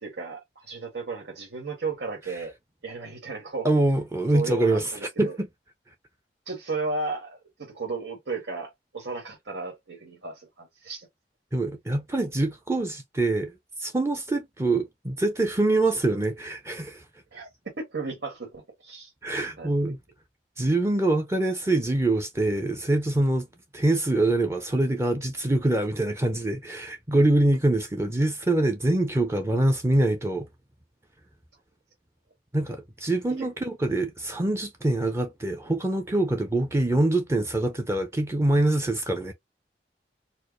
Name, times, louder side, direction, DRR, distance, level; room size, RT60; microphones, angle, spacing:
voice 1, 0.0-2.5 2.8-3.7 4.3-5.4 6.5-11.1 17.3-17.5 17.7-19.1 19.6-19.9 33.3-33.5, right 3 dB, 90° right, 1.4 m, -34 dB
voice 2, 3.6-5.5 11.5-13.5 13.8-17.0 19.2-20.0 20.6-23.5 23.7-30.5 32.5-39.3, right 2 dB, 15° right, 0.5 m, -24 dB
4.4 x 2.1 x 3.0 m
head